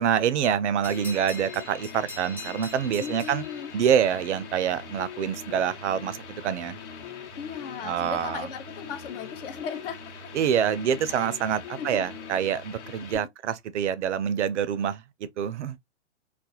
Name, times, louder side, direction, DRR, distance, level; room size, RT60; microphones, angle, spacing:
voice 1, 0.0-3.4 3.7-6.2 6.4-6.8 7.8-8.5 10.3-15.0 15.4-15.8, right 8 dB, 75° right, 0.5 m, -26 dB
sound 1, 0.8-13.2, left 6 dB, 75° left, 1.0 m, -42 dB
sound 2, 0.8-5.1, left 2 dB, 5° left, 0.6 m, -43 dB
voice 2, 3.0-3.7 7.4-10.1 11.8-12.1 13.1-13.3, left 7 dB, 50° left, 0.7 m, -37 dB
2.4 x 2.1 x 2.6 m
hypercardioid pair, 120°, 35 cm